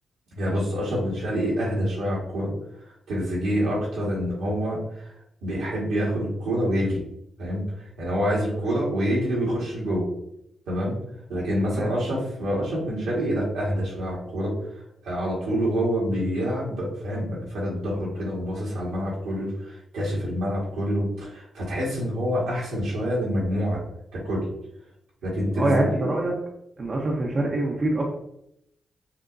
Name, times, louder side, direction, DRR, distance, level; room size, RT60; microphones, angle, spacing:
voice 1, 0.3-2.5 2.9-5.1 5.4-7.0 7.4-10.1 10.7-11.0 11.3-23.8 24.1-24.5 25.2-26.1, equal, 85° right, -5 dB, 1.7 m, -27 dB
voice 2, 25.6-26.3 26.8-28.1, right 2 dB, 50° right, -2 dB, 0.9 m, -24 dB
6.6 x 2.8 x 2.7 m, 0.78 s
supercardioid pair, 45°, 0 cm